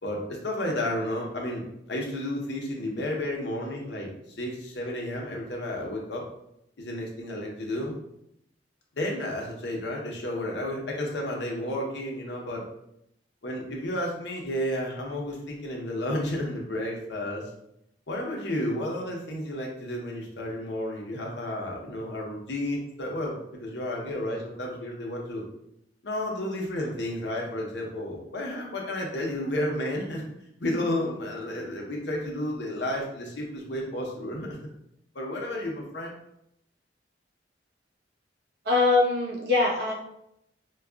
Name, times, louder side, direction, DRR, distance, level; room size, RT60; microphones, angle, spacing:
voice 1, 0.0-1.6 1.9-4.1 4.4-6.2 6.8-7.9 9.0-12.6 13.4-17.4 18.1-23.4 23.6-25.4 26.0-30.2 30.6-34.5 35.1-36.1, left 1 dB, 65° left, -1 dB, 0.8 m, -32 dB
voice 2, 38.6-39.9, left 3 dB, 60° right, -3 dB, 0.9 m, -22 dB
4.7 x 2.3 x 2.3 m, 0.78 s
head